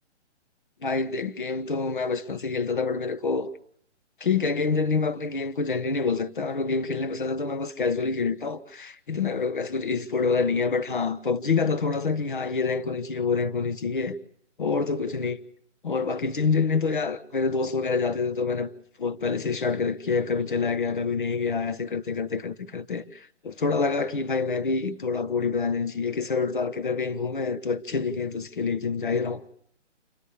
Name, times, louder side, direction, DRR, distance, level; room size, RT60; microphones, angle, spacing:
voice 1, 0.8-3.5 4.2-14.2 14.6-15.4 15.8-18.7 19.0-29.4, left 4 dB, 45° left, 1.1 m, -27 dB
28.0 x 13.0 x 8.4 m
hypercardioid pair, 175°, 36 cm